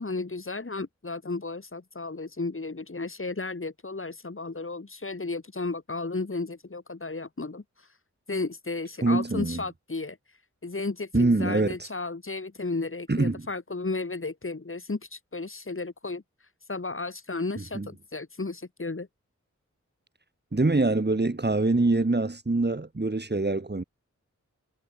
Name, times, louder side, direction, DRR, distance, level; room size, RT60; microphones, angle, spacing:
voice 1, 0.0-7.9 8.3-10.4 10.6-19.1, left 3 dB, 45° left, 4.4 m, -34 dB
voice 2, 9.0-9.6 11.1-11.8 13.1-13.5 17.6-17.9 20.5-23.8, right 2 dB, 35° right, 3.8 m, -24 dB
wide cardioid pair, 60°, 30 cm